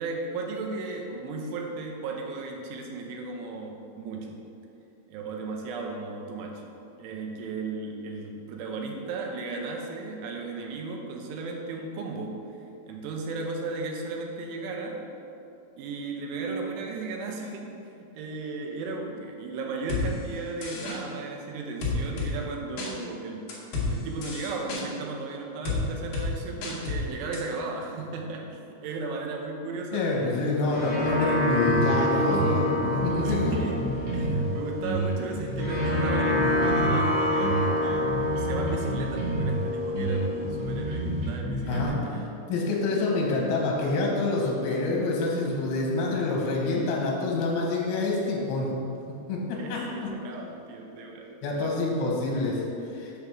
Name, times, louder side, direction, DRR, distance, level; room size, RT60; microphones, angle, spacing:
voice 1, 0.0-4.4 5.1-6.6 7.0-12.4 12.9-15.0 15.8-23.5 23.9-30.4 33.1-33.8 34.1-42.3 49.6-51.9, right 3 dB, 80° right, 1 dB, 2.6 m, -35 dB
sound 1, 19.9-20.0 20.6-21.0 21.8-22.3 22.8-22.9 23.5-23.9 24.2-24.8 25.7-25.8 26.1-26.3 26.6-27.0 27.3-27.4, left 4 dB, 90° left, 1.7 m, -30 dB
voice 2, 29.9-33.6 41.6-42.2 42.5-48.7 49.3-50.1 51.4-53.1, left 3 dB, 70° left, -2 dB, 2.7 m, -27 dB
sound 2, 30.4-41.3, left 1 dB, 55° left, 1.7 m, -28 dB
sound 3, 31.7-31.9 32.3-34.5 34.8-37.1 37.4-39.6 39.9-41.9, right 2 dB, 60° right, 2.7 m, -30 dB
6.8 x 3.4 x 5.9 m, 2.7 s
omnidirectional pair, 5.1 m